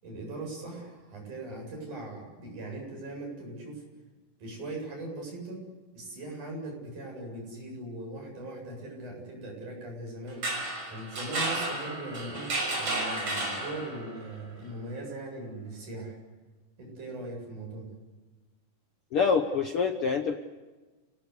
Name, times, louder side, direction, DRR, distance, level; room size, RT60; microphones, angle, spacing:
voice 1, 0.0-3.8 4.4-5.6 5.9-10.5 10.9-12.5 12.8-16.2 16.8-17.9, right 2 dB, 60° right, 0 dB, 9.4 m, -40 dB
sound 1, 10.3-14.2, right 2 dB, 45° right, 6.8 m, -32 dB
voice 2, 19.1-20.4, left 5 dB, 60° left, 6 dB, 1.6 m, -26 dB
29.5 x 19.0 x 8.3 m, 1.2 s
omnidirectional pair, 3.9 m